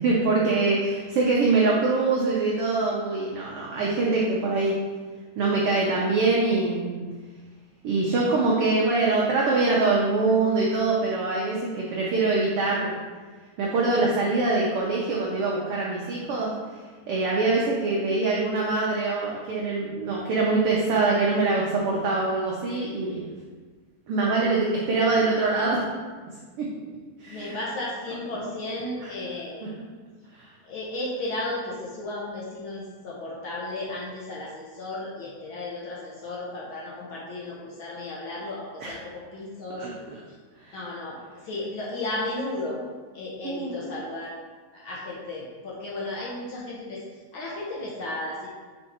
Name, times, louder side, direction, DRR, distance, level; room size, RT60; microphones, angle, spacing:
voice 1, 0.0-4.7 5.4-7.1 7.8-13.0 13.6-16.5 17.1-23.2 24.1-25.8 26.6-26.8 27.2-27.6 29.0-29.1 29.6-29.7 30.3-30.5 38.8-38.9 39.7-40.2 40.6-40.7 43.4-43.8, right 3 dB, 75° right, -3 dB, 1.3 m, -24 dB
voice 2, 27.2-29.6 30.7-39.9 40.7-41.2 41.4-42.8 43.1-44.3 44.7-47.0 47.3-48.5, left 2 dB, 65° left, -5 dB, 1.3 m, -34 dB
5.4 x 4.8 x 4.2 m, 1.4 s
omnidirectional pair, 3.4 m